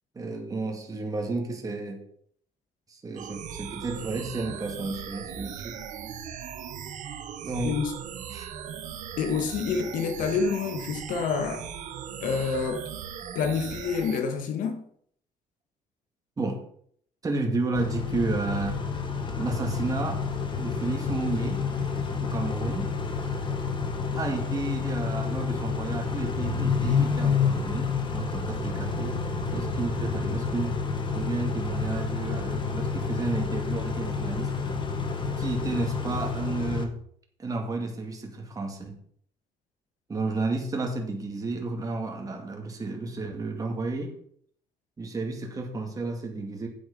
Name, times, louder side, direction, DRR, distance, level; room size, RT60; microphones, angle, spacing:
voice 1, 0.1-2.0 2.9-5.8 7.4-7.8 8.3-8.5 16.4-16.6 17.2-18.8 19.4-20.3 20.6-21.7 22.2-22.9 24.1-29.2 29.5-30.8 31.1-34.5 35.4-37.0 37.4-39.0 40.1-44.2 45.0-46.7, right 3 dB, 25° right, 2.2 m, -32 dB
sound 1, 3.2-14.2, right 8 dB, 65° right, 1.2 m, -38 dB
voice 2, 9.2-11.7 12.2-12.9 13.4-14.8, left 5 dB, 75° left, 1.7 m, -28 dB
Car / Idling / Accelerating revving vroom, 17.7-36.8, left 5 dB, 35° left, 1.6 m, -29 dB
8.1 x 8.0 x 5.4 m
cardioid pair, 110°, 14 cm